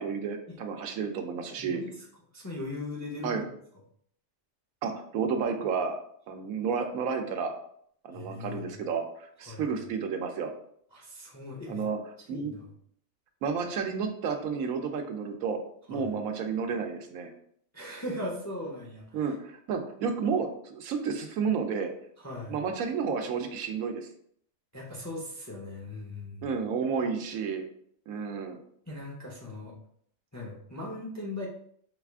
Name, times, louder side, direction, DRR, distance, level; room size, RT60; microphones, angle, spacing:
voice 1, 0.0-1.8 3.2-3.4 4.8-6.0 6.3-7.5 8.0-10.5 11.7-12.0 12.3-12.5 13.4-15.6 15.9-17.3 19.1-21.9 22.5-24.1 26.4-27.6 28.1-28.6, right 6 dB, 85° right, 5 dB, 1.1 m, -31 dB
voice 2, 1.6-2.0 2.3-3.4 8.1-8.8 9.5-9.6 10.9-11.9 12.3-12.7 15.9-16.1 17.7-19.1 22.2-22.6 24.7-26.5 28.9-29.7 30.3-31.5, left 2 dB, 25° left, -2 dB, 0.4 m, -39 dB
4.2 x 2.4 x 3.4 m, 0.64 s
omnidirectional pair, 1.4 m